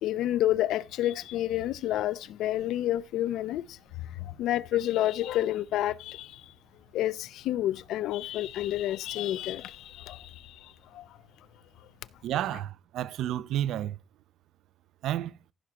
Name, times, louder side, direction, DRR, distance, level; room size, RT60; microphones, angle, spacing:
voice 1, 0.0-11.5 11.8-11.9, left 13 dB, 90° left, 0.4 m, -30 dB
voice 2, 12.2-14.0 15.0-15.3, right 12 dB, 75° right, 0.4 m, -31 dB
15.0 x 6.0 x 2.9 m
cardioid pair, 165°, 0 cm